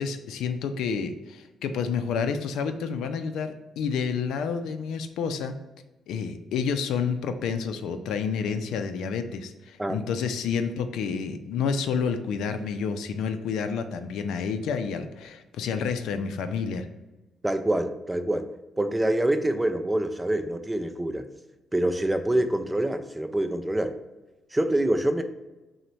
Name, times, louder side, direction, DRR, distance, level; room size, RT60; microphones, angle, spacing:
voice 1, 0.0-5.6 6.1-16.9, left 6 dB, 85° left, 8 dB, 0.3 m, -29 dB
voice 2, 17.4-18.5 18.8-21.3 21.7-23.9 24.5-25.2, right 1 dB, 10° right, 8 dB, 0.3 m, -25 dB
3.8 x 2.1 x 4.4 m, 1.1 s
cardioid pair, 90°, 0 cm